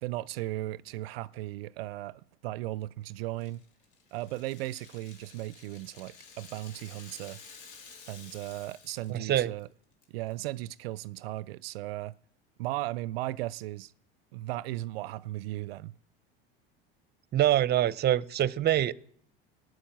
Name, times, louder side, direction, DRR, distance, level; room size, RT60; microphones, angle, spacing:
voice 1, 0.0-3.6 4.1-7.4 8.1-9.7 10.1-12.2 12.6-13.9 14.3-15.9, right 16 dB, 75° right, 0.5 m, -36 dB
Rattle (instrument), 3.4-9.2 9.5-9.6 10.0-10.5, left 5 dB, 70° left, 3.1 m, -52 dB
voice 2, 9.1-9.5 17.3-18.9, right 12 dB, 35° right, 0.7 m, -25 dB
14.0 x 7.8 x 9.2 m
hypercardioid pair, 85°, 29 cm